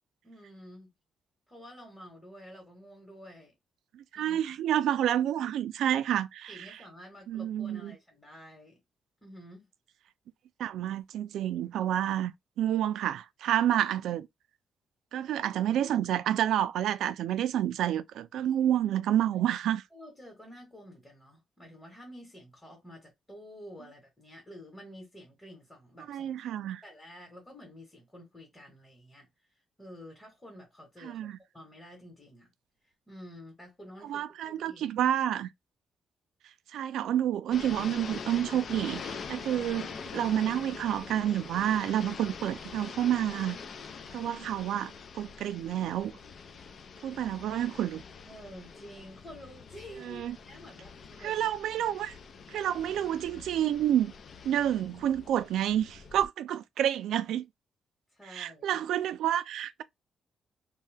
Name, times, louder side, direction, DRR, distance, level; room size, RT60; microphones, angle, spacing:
voice 1, 0.2-0.9 1.5-3.5 4.1-4.4 6.5-8.8 9.2-9.7 19.3-19.5 19.9-26.3 26.8-29.3 29.8-31.3 31.5-32.5 33.1-34.8 48.2-51.4 51.7-52.0 58.1-58.8, equal, 10° left, 1.1 m, -50 dB
voice 2, 3.9-6.8 7.3-8.0 10.6-12.3 12.6-14.3 15.1-19.8 26.1-26.8 31.0-31.4 34.0-35.5 36.7-43.6 44.1-46.1 47.0-48.0 50.0-50.4 51.2-52.2 52.5-54.1 54.4-57.4 58.2-59.8, right 11 dB, 90° right, 0.3 m, -29 dB
sound 1, 37.5-56.3, left 5 dB, 45° left, 0.4 m, -44 dB
2.7 x 2.2 x 3.3 m
cardioid pair, 160°, 0 cm